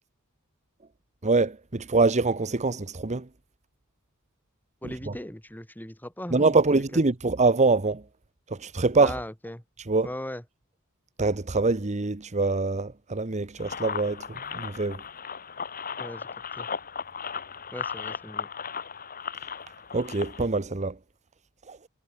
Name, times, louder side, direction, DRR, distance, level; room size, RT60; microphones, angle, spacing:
voice 1, 1.2-3.3 4.8-5.1 6.3-8.0 8.5-9.2 9.9-10.1 11.2-15.0 19.9-20.9 21.7-21.8, right 3 dB, 35° right, 1.0 m, -24 dB
voice 2, 4.8-6.6 9.0-9.6 10.0-10.4 16.0-16.3 16.6-16.7 17.7-18.5, left 1 dB, 10° left, 2.4 m, -38 dB
sound 1, 13.6-20.5, left 6 dB, 40° left, 3.1 m, -36 dB
head